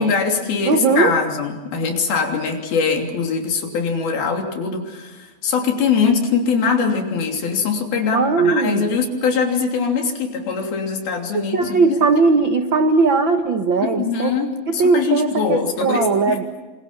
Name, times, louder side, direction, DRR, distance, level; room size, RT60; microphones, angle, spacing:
voice 1, 0.0-12.0 13.8-16.4, left 5 dB, 90° left, 2 dB, 5.0 m, -22 dB
voice 2, 0.6-1.1 8.1-9.0 11.3-14.3 14.7-16.4, right 4 dB, 85° right, 6 dB, 1.0 m, -18 dB
28.0 x 27.0 x 5.8 m, 1.3 s
omnidirectional pair, 4.2 m